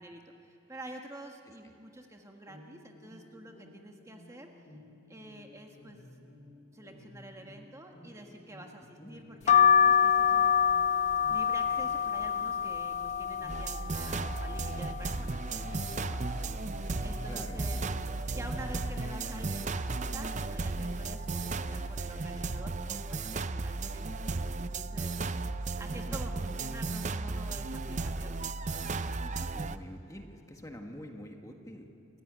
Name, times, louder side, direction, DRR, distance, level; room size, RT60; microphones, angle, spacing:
voice 1, 0.0-4.5 5.1-6.1 6.7-10.5 11.3-16.3 17.0-17.8 18.3-25.2 25.8-28.4 29.2-29.5, right 1 dB, 15° right, 2 dB, 1.4 m, -48 dB
sound 1, 2.4-19.9, left 1 dB, 55° left, 5.4 m, -54 dB
voice 2, 8.8-9.1 17.3-17.9 25.9-26.2 29.4-31.9, equal, 15° left, 3 dB, 1.6 m, -47 dB
sound 2, 9.5-15.2 15.6-16.4 16.8-16.9 17.0-18.2 18.6-19.0 19.8-20.1 20.9-21.1 21.4-21.6, left 8 dB, 35° left, 0.4 m, -27 dB
sound 3, 13.5-29.8, right 3 dB, 35° right, 0.6 m, -35 dB
29.0 x 15.0 x 9.4 m, 2.9 s
head